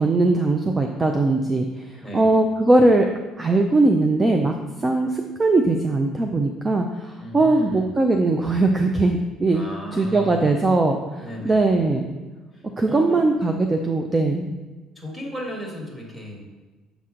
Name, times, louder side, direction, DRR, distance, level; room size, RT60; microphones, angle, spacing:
voice 1, 0.0-3.1 3.4-4.5 4.8-9.6 9.9-12.1 12.8-14.5, right 2 dB, 20° right, 4 dB, 0.4 m, -20 dB
voice 2, 2.0-2.4 7.2-8.0 9.5-10.6 11.2-11.7 12.5-13.2 15.0-16.5, equal, 5° right, -3 dB, 1.7 m, -35 dB
7.0 x 4.3 x 3.7 m, 1.2 s
cardioid pair, 110°, 0 cm